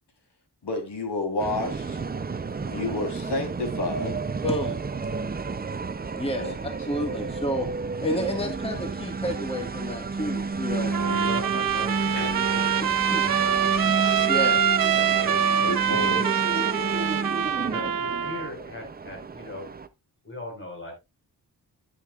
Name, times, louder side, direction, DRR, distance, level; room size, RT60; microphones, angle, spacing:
voice 1, 0.6-2.0 2.7-4.2 6.3-6.6 10.7-11.2 12.2-12.4 14.0-14.2 14.9-16.2, left 2 dB, 90° left, 3.4 m, -31 dB
sound 1, 1.4-19.9, right 4 dB, 25° right, 0.5 m, -31 dB
voice 2, 4.4-4.8 6.2-6.6 6.9-7.7 8.0-10.9 12.8-13.2 14.2-14.6, equal, 15° left, 1.6 m, -30 dB
voice 3, 10.8-13.8 14.3-14.6 15.0-16.4 17.6-19.7 20.2-20.9, left 2 dB, 30° left, 4.9 m, -40 dB
Trumpet, 10.9-18.5, right 8 dB, 55° right, 0.7 m, -25 dB
11.0 x 10.0 x 2.4 m
wide cardioid pair, 175°, 40 cm